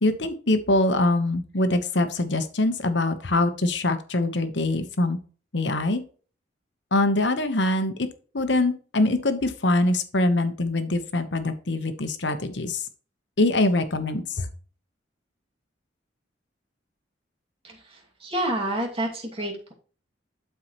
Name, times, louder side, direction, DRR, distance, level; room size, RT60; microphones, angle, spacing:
voice 1, 0.0-5.2 5.5-6.0 6.9-8.1 8.3-12.8 13.4-14.5, left 2 dB, 65° left, 9 dB, 1.1 m, -23 dB
voice 2, 17.6-19.7, right 1 dB, 30° right, -1 dB, 2.4 m, -29 dB
12.0 x 4.7 x 3.1 m, 0.40 s
head